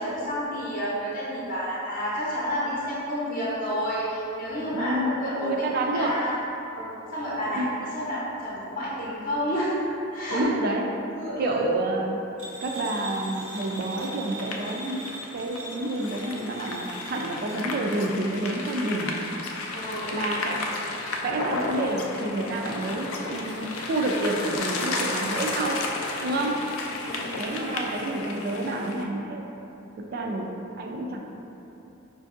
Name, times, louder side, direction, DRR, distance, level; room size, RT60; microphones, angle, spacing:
voice 1, 0.0-6.4 6.7-7.6 7.9-9.7 10.1-10.5 11.1-11.8 19.7-20.6 22.3-22.4 26.3-26.6 27.0-27.9 30.1-30.2, equal, 40° left, -8 dB, 0.7 m, -30 dB
voice 2, 4.7-5.1 5.4-6.1 7.5-7.7 10.3-10.8 11.4-12.2 12.6-15.0 15.3-19.1 20.1-20.6 21.2-25.8 26.2-26.6 27.4-29.4 30.1-30.5 30.8-31.2, right 2 dB, 45° right, 1 dB, 0.3 m, -29 dB
sound 1, 12.4-17.6, right 1 dB, 85° right, 0.7 m, -40 dB
sound 2, 13.6-29.0, left 2 dB, 80° left, 0.4 m, -33 dB
5.1 x 2.6 x 2.4 m, 3.0 s
head